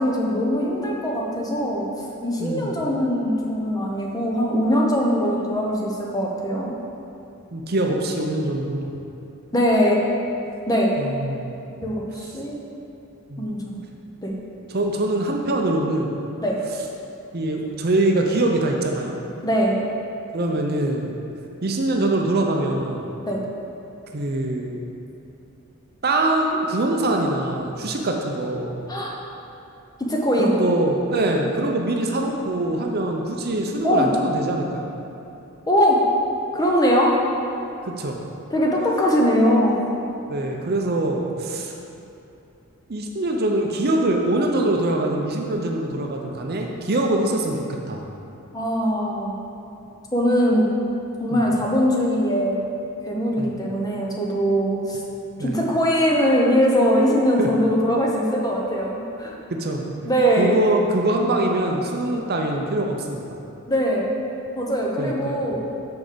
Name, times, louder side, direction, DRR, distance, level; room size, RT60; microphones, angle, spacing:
voice 1, 0.0-1.9 2.2-6.7 9.5-10.0 10.7-11.0 11.8-12.6 13.4-13.8 14.2-14.3 16.4-16.6 19.4-19.8 23.3-23.4 28.9-29.1 30.1-30.6 33.8-34.1 35.7-36.0 36.5-37.2 38.5-39.8 48.5-49.4 50.1-50.7 51.2-52.6 53.0-55.0 55.4-59.4 60.0-60.6 63.7-64.1 64.6-65.6, equal, 15° left, -2 dB, 0.9 m, -21 dB
voice 2, 2.4-2.7 7.5-8.9 11.0-11.7 13.3-13.5 14.7-16.2 17.3-19.2 20.3-21.1 21.6-23.1 24.1-24.8 26.0-28.8 30.4-34.9 37.8-38.2 40.3-41.7 42.9-48.1 51.3-51.4 53.4-53.5 55.4-55.6 57.4-57.5 59.5-59.9 60.4-63.4 65.0-65.4, right 1 dB, 45° right, 1 dB, 0.7 m, -23 dB
6.3 x 4.8 x 6.8 m, 2.8 s
head